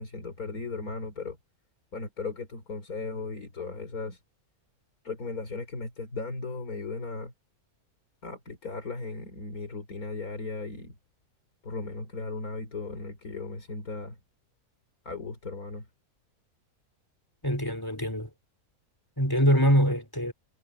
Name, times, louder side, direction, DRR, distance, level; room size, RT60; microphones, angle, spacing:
voice 1, 0.0-1.4 1.9-4.2 5.0-7.3 8.2-11.0 11.6-14.2 15.0-15.9, left 3 dB, 75° left, 4.1 m, -36 dB
voice 2, 17.4-18.3 19.2-20.3, equal, 15° left, 3.4 m, -24 dB
omnidirectional pair, 1.6 m